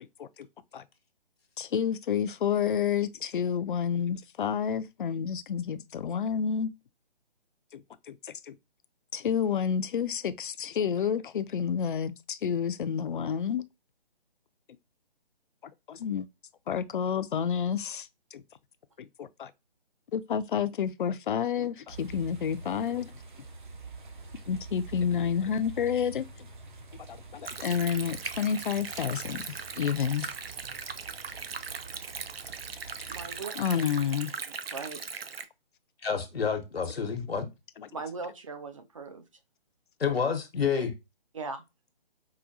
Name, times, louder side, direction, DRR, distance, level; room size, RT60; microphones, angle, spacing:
voice 1, 1.6-6.7 7.7-8.5 9.1-13.6 15.9-16.3 16.7-18.4 19.0-19.5 20.1-23.1 24.5-26.3 27.1-29.5 29.8-30.3 33.6-34.3, left 7 dB, 60° left, 0.4 m, -29 dB
sound 1, 21.9-33.4, right 3 dB, 55° right, 0.8 m, -46 dB
Stream, 27.4-35.4, right 6 dB, 80° right, 0.6 m, -39 dB
voice 2, 33.1-33.8 34.5-35.1 37.9-39.2 41.3-41.6, right 4 dB, 35° right, 0.4 m, -39 dB
voice 3, 36.0-37.5 40.0-40.9, left 6 dB, 90° left, 0.9 m, -29 dB
4.8 x 2.2 x 2.6 m
figure-of-eight pair, 150°, 29 cm